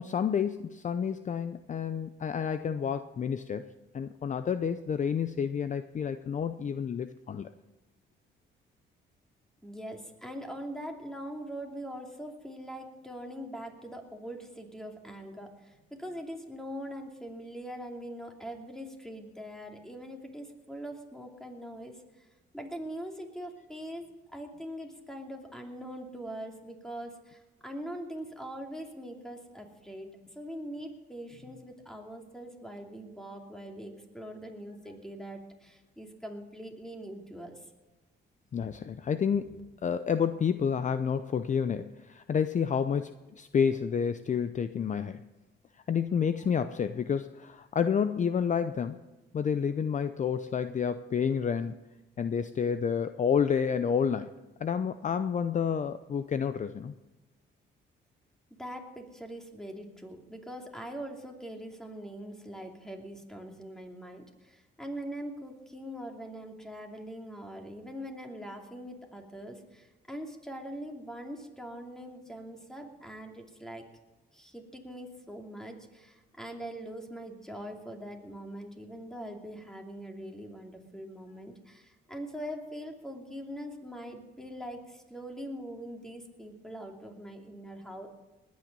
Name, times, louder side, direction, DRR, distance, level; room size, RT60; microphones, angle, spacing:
voice 1, 0.0-7.5 38.5-39.6 39.8-45.2 45.9-49.0 49.3-51.8 52.2-54.3 54.6-56.9, left 7 dB, 40° left, 12 dB, 0.6 m, -29 dB
voice 2, 9.6-22.3 22.5-24.0 24.3-37.6 38.6-39.0 58.6-73.8 74.3-88.1, equal, 5° left, 2 dB, 2.8 m, -42 dB
19.5 x 9.6 x 5.4 m, 1.1 s
cardioid pair, 90°, 20 cm